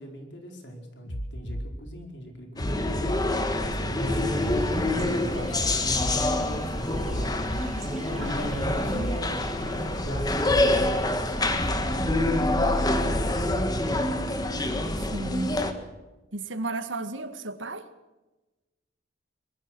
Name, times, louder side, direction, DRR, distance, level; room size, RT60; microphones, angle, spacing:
voice 1, 0.0-3.4 3.8-7.5 8.1-12.7 13.1-14.2, equal, 65° left, 3 dB, 4.7 m, -42 dB
sound 1, 1.1-1.7 2.6-3.2 4.1-4.7 5.6-6.2 7.1-7.7 8.6-9.2 10.1-10.7 11.6-12.2 13.1-13.7 14.6-14.7, equal, 90° left, 2.9 m, -33 dB
sound 2, 2.6-15.7, left 1 dB, 20° left, 1.7 m, -26 dB
sound 3, 4.0-13.2, right 1 dB, 35° right, 1.3 m, -41 dB
voice 2, 8.2-8.6 8.9-9.1 15.1-15.6 16.3-17.9, right 2 dB, 85° right, 10 dB, 1.8 m, -34 dB
23.5 x 21.0 x 6.2 m, 1.1 s
head